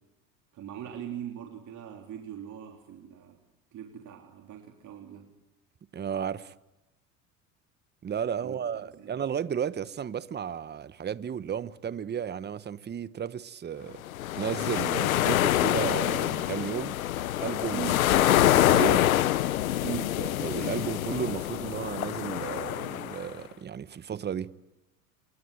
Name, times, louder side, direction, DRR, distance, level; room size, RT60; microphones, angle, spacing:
voice 1, 0.5-3.4 3.7-5.3 8.4-8.6 8.9-9.1 17.7-18.0 19.8-20.2, right 10 dB, 45° right, 3.6 m, -40 dB
voice 2, 5.9-6.5 8.0-14.0 14.3-17.0 17.4-17.9 18.2-19.1 20.2-24.5, right 8 dB, 25° right, 1.1 m, -34 dB
sound 1, 14.1-23.3, left 13 dB, 80° left, 1.0 m, -26 dB
28.5 x 22.5 x 9.1 m
hypercardioid pair, 75°, 41 cm